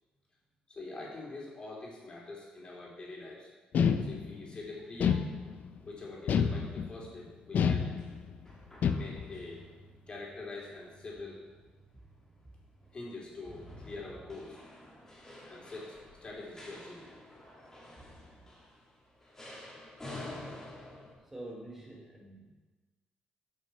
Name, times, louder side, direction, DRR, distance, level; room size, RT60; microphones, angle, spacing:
voice 1, 0.7-3.5 4.0-5.3 5.8-8.0 8.8-9.6 10.1-11.4 12.9-14.6 15.4-17.2, left 3 dB, 35° left, -4 dB, 3.2 m, -44 dB
sound 1, 3.7-4.5 5.0-5.8 6.3-7.1 7.5-8.4 8.8-9.4, left 6 dB, 65° left, 0.5 m, -29 dB
sound 2, 4.5-21.1, left 1 dB, 15° left, 2.6 m, -51 dB
voice 2, 21.2-22.5, right 1 dB, 10° right, -2 dB, 1.4 m, -47 dB
11.0 x 6.4 x 4.4 m, 1.3 s
cardioid pair, 105°, 3 cm